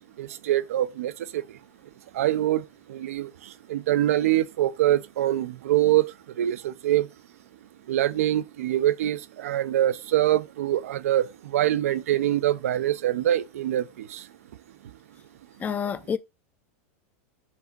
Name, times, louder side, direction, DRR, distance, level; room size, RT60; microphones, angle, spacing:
voice 1, 0.2-1.6 2.1-7.1 7.9-14.3, right 13 dB, 85° right, 0.6 m, -25 dB
voice 2, 15.6-16.2, left 7 dB, 20° left, 0.6 m, -28 dB
5.9 x 3.6 x 6.0 m
supercardioid pair, 125°, 8 cm